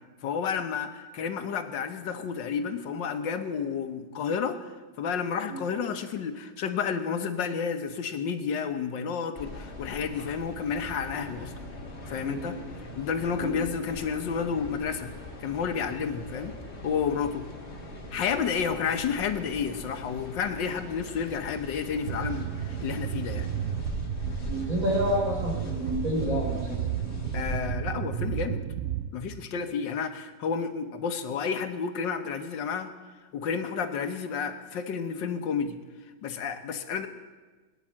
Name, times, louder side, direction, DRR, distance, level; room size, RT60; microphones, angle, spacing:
voice 1, 0.2-11.5 12.1-15.1 15.4-16.5 16.8-17.5 18.1-23.5 27.3-28.6 29.1-32.9 33.3-35.8 36.2-37.1, left 6 dB, 80° left, 8 dB, 1.7 m, -31 dB
sound 1, 9.3-27.6, left 2 dB, 35° left, 2.1 m, -41 dB
sound 2, 22.0-29.1, right 10 dB, 80° right, 0.6 m, -32 dB
voice 2, 24.5-26.8, equal, 45° right, -4 dB, 5.8 m, -29 dB
19.0 x 10.0 x 7.4 m, 1.3 s
omnidirectional pair, 1.9 m